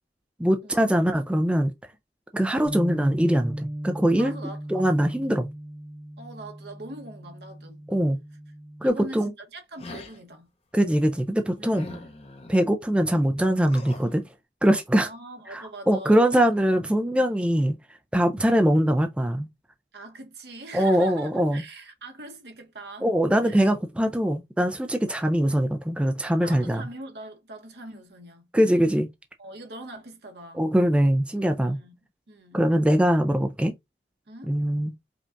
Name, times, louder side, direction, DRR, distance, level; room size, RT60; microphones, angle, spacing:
voice 1, 0.4-1.7 2.3-4.3 4.7-5.5 7.9-8.2 8.8-9.3 10.7-11.9 12.5-14.2 14.6-15.1 15.5-17.8 18.1-19.5 20.7-21.6 23.0-26.9 28.5-29.1 30.5-31.8 32.5-33.7 34.5-34.9, equal, 5° right, 0.3 m, -22 dB
Bass guitar, 2.6-8.9, right 1 dB, 35° right, 0.8 m, -36 dB
voice 2, 4.1-4.9 6.2-7.8 8.8-10.5 11.6-12.1 15.0-16.4 19.9-23.1 23.4-23.7 26.4-28.5 29.4-30.7 31.6-31.9 32.3-32.7 34.3-34.6, right 1 dB, 70° right, 1.1 m, -42 dB
sound 1, 9.8-10.2 11.7-12.5 13.6-14.1, left 2 dB, 35° left, 0.7 m, -41 dB
5.0 x 2.3 x 2.5 m
head